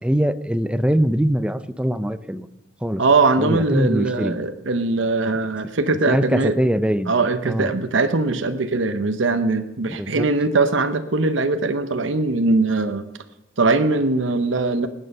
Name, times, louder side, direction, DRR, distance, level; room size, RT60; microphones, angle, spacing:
voice 1, 0.0-2.5 2.8-3.0 3.4-4.4 6.1-7.1 7.4-7.7 9.9-10.3, equal, 5° right, 13 dB, 0.5 m, -22 dB
voice 2, 3.0-6.6 7.1-13.1 13.6-14.9, right 3 dB, 70° right, 8 dB, 0.8 m, -21 dB
19.0 x 9.2 x 5.5 m, 0.95 s
head